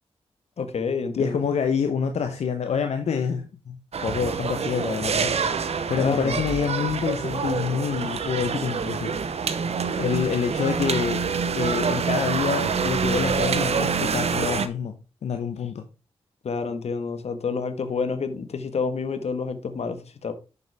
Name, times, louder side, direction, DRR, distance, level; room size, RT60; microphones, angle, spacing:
voice 1, 0.6-1.4 6.0-6.4 16.4-20.3, left 5 dB, 75° left, 1.4 m, -28 dB
voice 2, 1.2-5.3 5.9-9.1 10.0-11.2 11.6-14.9 15.2-15.8, left 6 dB, 90° left, 0.9 m, -27 dB
sound 1, 3.9-14.7, right 5 dB, 70° right, 0.8 m, -26 dB
9.8 x 7.0 x 3.4 m
cardioid pair, 75°, 11 cm